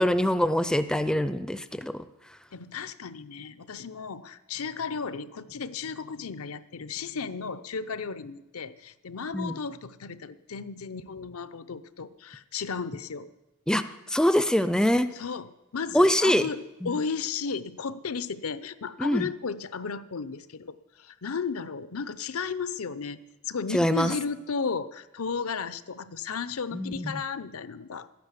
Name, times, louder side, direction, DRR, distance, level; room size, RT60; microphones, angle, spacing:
voice 1, 0.0-2.1 9.3-9.6 13.7-15.1 15.9-16.4 16.8-17.0 19.0-19.3 23.7-24.1 26.7-27.2, equal, 5° left, 11 dB, 0.4 m, -24 dB
voice 2, 2.5-13.3 15.1-23.2 23.4-28.1, left 5 dB, 75° left, 15 dB, 0.7 m, -34 dB
12.5 x 10.5 x 8.2 m, 1.0 s
head